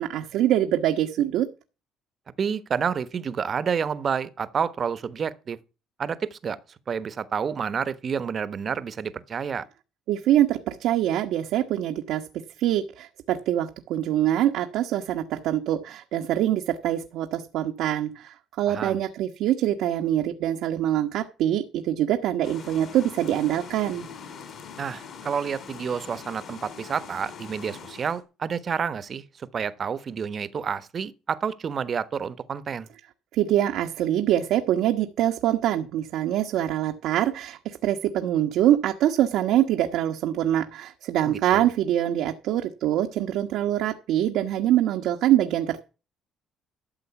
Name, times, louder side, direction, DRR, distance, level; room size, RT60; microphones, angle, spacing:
voice 1, 0.0-1.5 10.1-12.2 12.6-24.1 33.3-45.8, right 12 dB, 80° right, 1.3 m, -24 dB
voice 2, 2.4-5.6 6.0-6.6 6.9-9.6 18.7-19.0 24.8-32.9 41.3-41.7, right 6 dB, 40° right, 1.2 m, -29 dB
sound 1, 22.4-28.2, left 6 dB, 50° left, 4.1 m, -42 dB
13.0 x 7.7 x 5.9 m
cardioid pair, 125°, 0 cm